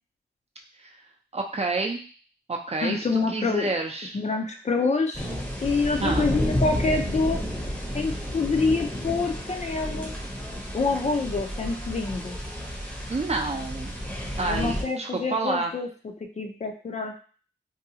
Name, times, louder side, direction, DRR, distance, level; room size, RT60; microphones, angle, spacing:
voice 1, 1.3-2.0 2.5-4.2 6.0-6.3 13.1-13.9 14.4-15.7, right 3 dB, 35° right, 2 dB, 0.6 m, -29 dB
voice 2, 2.8-3.8 4.1-5.3 5.6-7.4 7.9-10.1 10.7-12.4 14.5-15.9 16.4-17.1, left 4 dB, 40° left, 4 dB, 0.5 m, -26 dB
sound 1, 5.1-14.8, equal, 5° left, 0.8 m, -31 dB
2.7 x 2.3 x 2.8 m, 0.41 s
cardioid pair, 55°, 18 cm